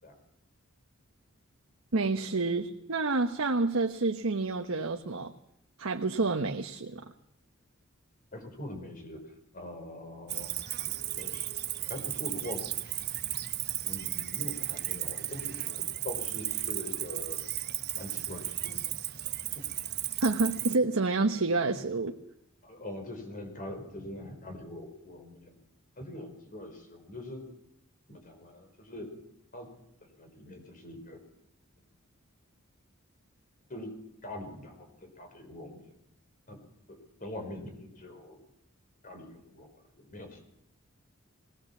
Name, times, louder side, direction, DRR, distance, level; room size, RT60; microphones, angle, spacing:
voice 1, 1.9-5.3 5.8-7.0 20.2-22.2, right 3 dB, 80° right, 5 dB, 1.1 m, -28 dB
voice 2, 8.3-9.2 9.5-10.5 10.8-11.5 11.9-12.6 13.8-17.4 17.9-18.8 19.5-19.6 22.6-25.6 26.0-27.5 28.1-29.1 29.5-29.7 30.0-31.2 33.7-33.9 34.2-35.9 36.5-36.6 36.9-38.4 39.0-40.4, left 1 dB, 40° left, 5 dB, 5.0 m, -43 dB
Cricket, 10.3-20.7, right 13 dB, 50° right, 1.1 m, -35 dB
20.5 x 18.5 x 7.3 m, 0.75 s
head